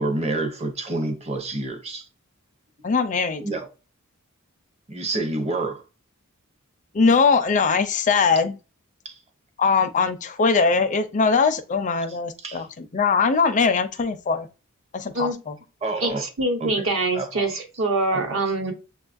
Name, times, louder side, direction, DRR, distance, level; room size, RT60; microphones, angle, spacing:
voice 1, 0.0-2.1 3.4-3.7 4.9-5.8 9.0-9.2 12.4-12.6 15.8-16.2 16.6-16.8 17.1-17.5 18.1-18.4, right 2 dB, 30° right, 0.7 m, -28 dB
voice 2, 2.8-3.4 6.9-8.6 9.6-14.5 14.9-15.5, left 5 dB, 35° left, 0.4 m, -21 dB
voice 3, 16.0-18.7, right 2 dB, 65° right, 1.1 m, -24 dB
6.9 x 2.4 x 2.5 m
head